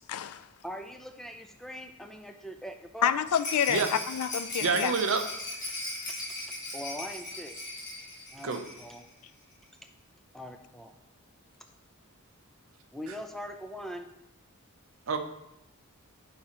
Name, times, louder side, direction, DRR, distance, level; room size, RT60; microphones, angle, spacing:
voice 1, 0.1-0.5 3.0-4.9, left 8 dB, 85° left, 15 dB, 0.3 m, -28 dB
voice 2, 0.6-3.1 6.7-7.6 8.3-9.0 10.3-10.9 12.9-14.1, equal, ahead, 6 dB, 0.4 m, -41 dB
Rattle, 3.3-9.0 9.3-9.4 9.6-9.7, left 2 dB, 35° left, 2.0 m, -38 dB
voice 3, 4.6-5.2 8.4-8.6 15.1-15.2, right 5 dB, 60° right, 7 dB, 0.6 m, -27 dB
8.7 x 4.8 x 2.9 m, 0.86 s
head